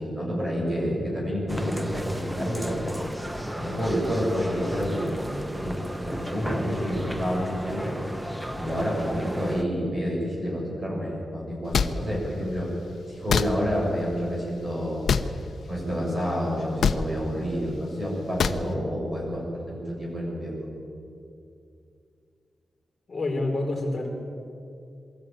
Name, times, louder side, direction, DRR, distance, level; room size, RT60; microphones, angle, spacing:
voice 1, 0.0-3.0 3.5-7.9 8.5-12.7 13.1-15.1 15.6-20.5, equal, 30° right, -4 dB, 7.4 m, -29 dB
sound 1, 1.5-9.6, equal, 5° right, 1.0 m, -34 dB
sound 2, 11.7-11.9 13.3-13.5 15.1-15.3 16.8-17.0 18.4-18.6, left 6 dB, 80° left, 0.8 m, -22 dB
voice 2, 23.1-24.1, left 2 dB, 30° left, -1 dB, 4.3 m, -27 dB
23.5 x 13.5 x 9.1 m, 2.5 s
wide cardioid pair, 170°, 0 cm